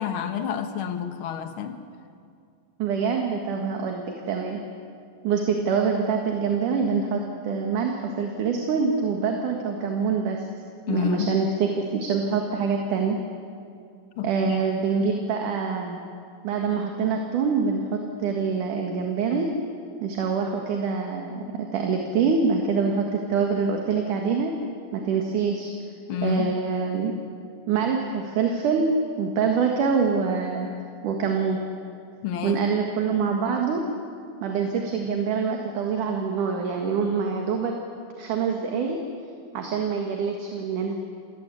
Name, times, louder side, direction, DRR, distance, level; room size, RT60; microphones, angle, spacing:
voice 1, 0.0-1.8 10.9-11.3 14.2-14.6 26.1-26.6 32.2-32.6, left 9 dB, 55° left, 8 dB, 1.5 m, -29 dB
voice 2, 2.8-4.6 5.2-10.4 10.9-13.2 14.2-16.0 16.4-19.5 20.0-24.5 24.9-25.7 26.2-27.1 27.7-30.7 31.0-31.6 32.4-33.8 34.4-37.7 38.2-39.0 39.5-41.0, right 5 dB, 65° right, 2 dB, 3.1 m, -25 dB
28.0 x 19.0 x 8.4 m, 2.3 s
omnidirectional pair, 4.2 m